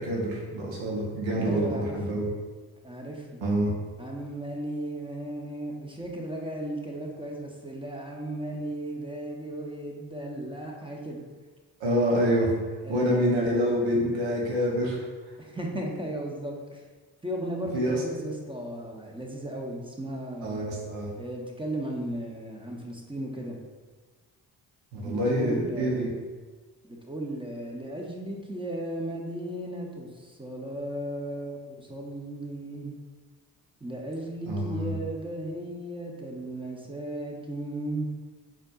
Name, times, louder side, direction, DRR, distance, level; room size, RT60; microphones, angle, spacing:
voice 1, 0.0-2.3 3.4-3.7 11.8-12.5 12.9-15.0 17.7-18.0 20.4-21.1 24.9-26.1 34.5-34.9, equal, 70° right, -3 dB, 1.0 m, -26 dB
voice 2, 1.4-2.2 2.8-3.4 4.0-11.2 12.8-13.4 15.4-16.8 17.2-20.6 21.1-23.6 25.0-26.1 26.8-32.9 33.8-38.1, right 1 dB, 10° right, 0 dB, 0.7 m, -35 dB
4.2 x 2.8 x 2.4 m, 1.3 s
supercardioid pair, 45°, 47 cm